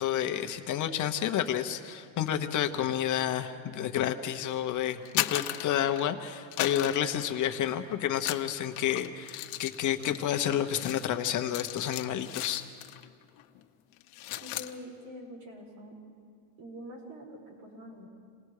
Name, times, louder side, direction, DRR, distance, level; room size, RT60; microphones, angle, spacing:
voice 1, 0.0-12.6, left 10 dB, 35° left, 6 dB, 0.9 m, -30 dB
sound 1, 4.9-6.2 6.5-7.8 8.1-13.1 13.4-13.6 13.9-14.7, left 16 dB, 65° left, 1.1 m, -37 dB
voice 2, 14.4-16.0 16.6-18.1, equal, 85° right, -1 dB, 6.3 m, -45 dB
28.5 x 20.0 x 4.9 m, 2.3 s
cardioid pair, 165°, 49 cm